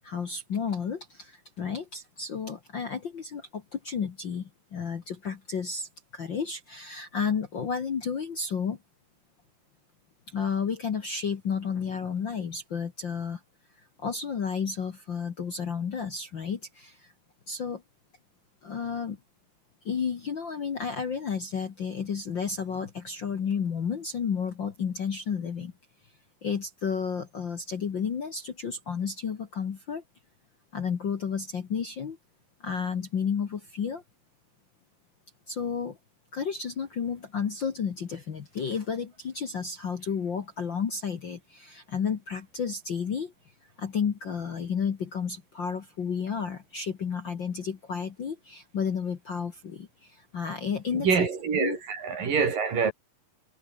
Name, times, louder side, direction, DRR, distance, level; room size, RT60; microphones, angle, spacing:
voice 1, 0.0-8.8 10.3-13.4 14.0-17.1 17.5-17.8 18.6-19.2 19.8-25.7 26.4-30.0 30.7-32.2 32.6-34.0 35.5-36.0 36.3-43.3 43.8-51.1 51.6-51.8, left 6 dB, 45° left, 1.6 m, -32 dB
voice 2, 50.9-52.9, right 6 dB, 75° right, 6.0 m, -26 dB
omnidirectional pair, 3.9 m